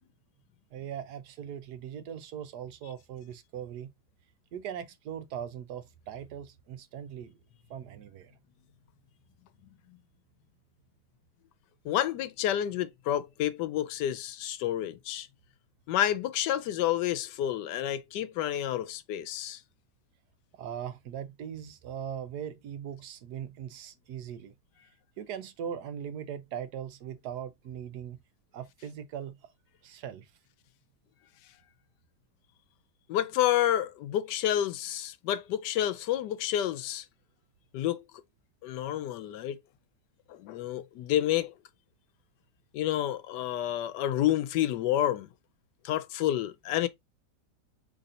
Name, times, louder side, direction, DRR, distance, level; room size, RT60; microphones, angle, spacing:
voice 1, 0.7-3.9 4.5-7.4 7.7-8.3 20.6-24.5 25.2-28.2 28.5-29.4 29.8-30.3, right 9 dB, 75° right, 1.3 m, -40 dB
voice 2, 11.8-15.3 15.9-19.6 33.1-37.0 37.7-38.0 38.6-39.6 40.3-41.5 42.7-45.3 45.8-46.9, left 12 dB, 85° left, 1.2 m, -29 dB
4.1 x 3.3 x 3.7 m
omnidirectional pair, 1.8 m